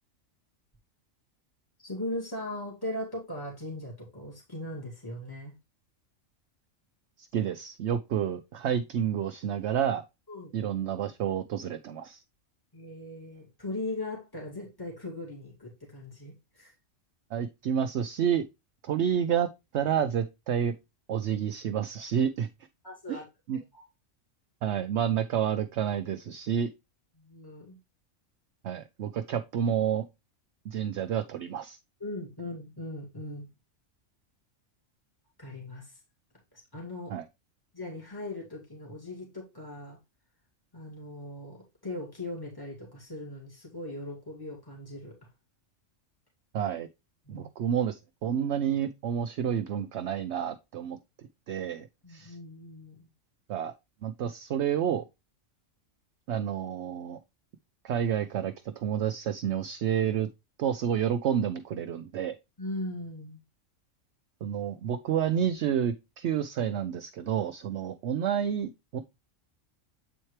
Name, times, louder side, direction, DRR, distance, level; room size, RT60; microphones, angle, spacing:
voice 1, 1.8-5.5 10.3-10.5 12.7-16.7 22.8-23.3 23.5-23.9 27.2-27.8 32.0-33.5 35.4-36.0 36.5-37.2 37.7-40.0 40.7-45.3 47.3-47.5 52.0-53.1 62.6-63.4, left 1 dB, 15° left, 2.3 m, -39 dB
voice 2, 7.2-10.0 10.5-12.2 17.3-18.5 18.8-19.5 19.7-20.7 21.1-22.5 23.1-23.2 23.5-23.6 24.6-26.7 28.6-30.0 30.6-31.8 37.1-37.2 46.5-46.9 47.3-52.4 53.5-53.7 54.0-55.0 56.3-57.2 57.8-60.3 60.6-62.4 64.4-69.0, right 9 dB, 65° right, 0.8 m, -29 dB
8.0 x 4.4 x 3.2 m
omnidirectional pair, 1.4 m